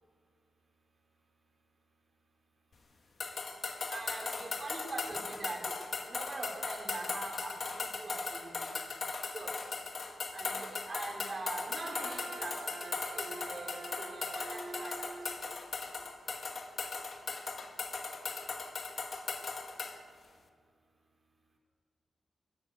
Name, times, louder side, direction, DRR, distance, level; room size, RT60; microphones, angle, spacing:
sound 1, 3.2-20.0, left 4 dB, 50° left, 1.8 m, -38 dB
voice 1, 3.9-5.8 6.0-8.7 9.3-9.7 10.3-12.5 12.8-15.5, right 2 dB, 35° right, 0 dB, 4.6 m, -43 dB
Wind instrument woodwind instrument, 11.7-15.4, right 4 dB, 85° right, 1.8 m, -46 dB
23.0 x 20.5 x 6.7 m, 2.1 s
wide cardioid pair, 130°, 0 cm